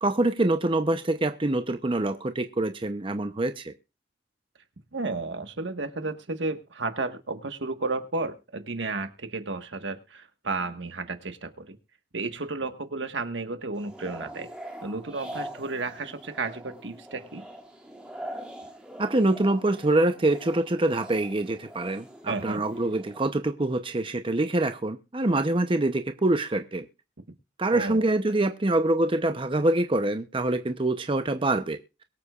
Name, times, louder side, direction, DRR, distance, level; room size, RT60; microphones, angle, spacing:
voice 1, 0.0-3.7 19.0-26.8 27.6-31.8, right 2 dB, 30° right, 8 dB, 0.8 m, -25 dB
voice 2, 4.9-11.8 12.1-14.5 14.8-17.4 22.3-22.6 27.7-28.0, right 3 dB, 75° right, 8 dB, 1.5 m, -32 dB
sound 1, 13.7-23.2, right 1 dB, 5° right, 2.5 m, -43 dB
22.5 x 8.2 x 2.4 m, 0.29 s
head